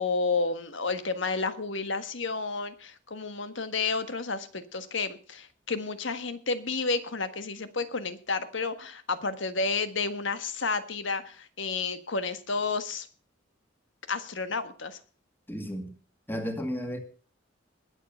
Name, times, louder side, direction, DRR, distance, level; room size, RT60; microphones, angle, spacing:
voice 1, 0.0-13.1 14.1-15.0, left 4 dB, 75° left, 1.5 m, -31 dB
voice 2, 15.5-15.9 16.3-17.0, equal, 10° left, 2.1 m, -33 dB
20.5 x 7.6 x 5.5 m
head